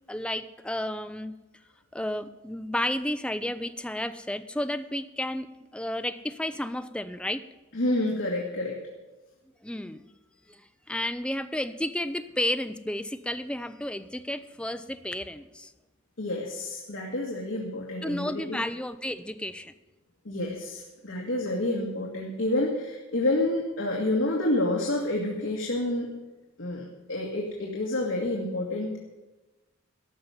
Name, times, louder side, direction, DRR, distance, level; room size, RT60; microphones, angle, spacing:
voice 1, 0.1-1.3 1.9-7.5 9.6-10.1 10.5-10.6 10.9-15.7 18.0-19.7, left 1 dB, 5° left, 10 dB, 0.5 m, -32 dB
voice 2, 7.7-8.8 16.2-18.6 20.3-26.1 26.6-29.0, left 1 dB, 70° left, -2 dB, 1.9 m, -29 dB
13.5 x 5.7 x 9.6 m, 1.1 s
head